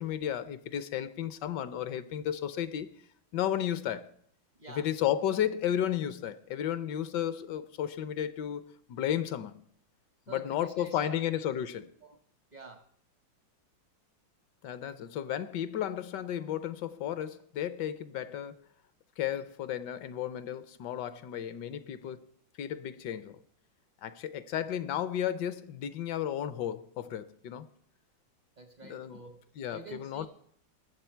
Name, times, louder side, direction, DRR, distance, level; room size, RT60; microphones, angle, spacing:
voice 1, 0.0-2.9 3.3-4.1 4.7-9.6 10.3-11.8 14.6-18.6 19.2-22.3 22.6-23.4 24.0-27.7 28.8-29.2 29.6-30.3, left 10 dB, 70° left, 1.2 m, -33 dB
voice 2, 10.3-11.6 12.0-12.2 12.5-12.8 28.6-29.4 29.7-30.3, right 3 dB, 45° right, 0.6 m, -48 dB
20.0 x 7.5 x 4.5 m
omnidirectional pair, 2.1 m